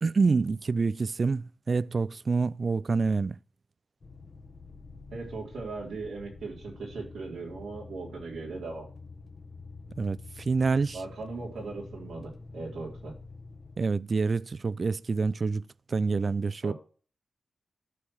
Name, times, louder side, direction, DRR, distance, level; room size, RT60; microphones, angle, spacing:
voice 1, 0.0-3.4 10.0-11.0 13.8-16.7, right 4 dB, 50° right, 0.4 m, -27 dB
sound 1, 4.0-13.8, left 3 dB, 50° left, 1.4 m, -47 dB
voice 2, 5.1-8.9 10.9-13.1 16.6-16.7, right 3 dB, 90° right, 3.7 m, -38 dB
11.5 x 4.5 x 6.3 m
cardioid pair, 60°, 0 cm